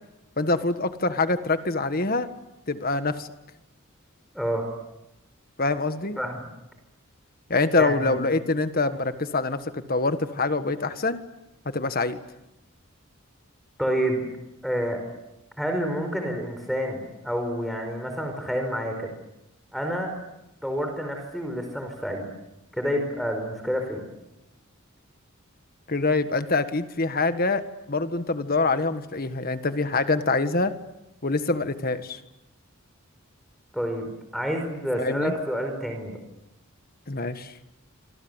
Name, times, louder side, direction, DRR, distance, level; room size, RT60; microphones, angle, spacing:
voice 1, 0.4-2.3 2.7-3.3 5.6-6.2 7.5-11.2 11.7-12.2 25.9-27.6 27.9-30.7 31.2-32.2 35.0-35.3 37.1-37.5, left 3 dB, 45° left, 10 dB, 1.6 m, -25 dB
voice 2, 4.3-4.7 6.2-6.5 7.8-8.2 13.8-14.3 14.6-15.0 15.6-17.0 17.2-19.2 19.7-20.1 20.6-22.3 22.7-24.1 33.7-36.2, equal, ahead, 5 dB, 4.9 m, -28 dB
27.5 x 26.0 x 8.2 m, 0.93 s
head